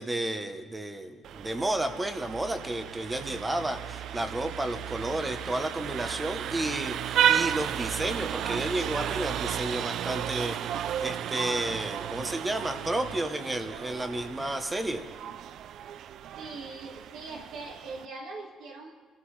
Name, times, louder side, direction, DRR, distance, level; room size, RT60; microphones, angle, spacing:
voice 1, 0.0-10.6 11.0-15.1, right 1 dB, 10° right, 8 dB, 0.8 m, -32 dB
Vehicle horn car horn honking, 1.2-18.1, right 10 dB, 60° right, 0.3 m, -33 dB
voice 2, 16.4-18.9, right 3 dB, 85° right, -1 dB, 1.7 m, -41 dB
28.5 x 13.0 x 3.2 m, 1.5 s
cardioid pair, 160°, 0 cm